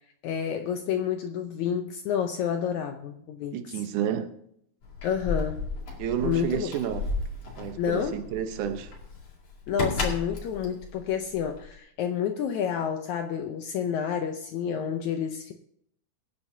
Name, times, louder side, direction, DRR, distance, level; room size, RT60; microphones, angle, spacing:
voice 1, 0.2-3.6 5.0-5.6 6.2-6.7 7.8-8.2 9.7-15.5, left 8 dB, 75° left, 1.7 m, -29 dB
voice 2, 3.5-4.3 6.0-7.1 7.6-8.9, right 9 dB, 70° right, 2.2 m, -30 dB
Keys jangling, 4.8-11.8, left 3 dB, 50° left, 3.1 m, -34 dB
23.5 x 9.5 x 2.7 m
omnidirectional pair, 4.1 m